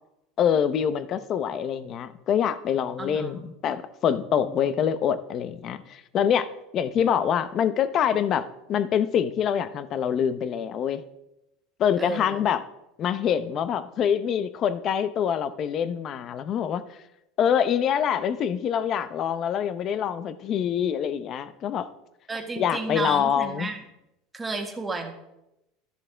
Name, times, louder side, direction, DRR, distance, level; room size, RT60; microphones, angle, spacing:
voice 1, 0.4-11.0 11.8-12.6 13.0-17.0 17.4-21.9 22.6-23.7, left 8 dB, 40° left, 13 dB, 0.7 m, -25 dB
voice 2, 3.0-3.5 4.4-4.6 12.0-12.4 22.3-23.8 24.3-25.1, right 3 dB, 15° right, 3 dB, 1.6 m, -32 dB
13.5 x 11.5 x 3.4 m, 0.89 s
supercardioid pair, 135°, 0 cm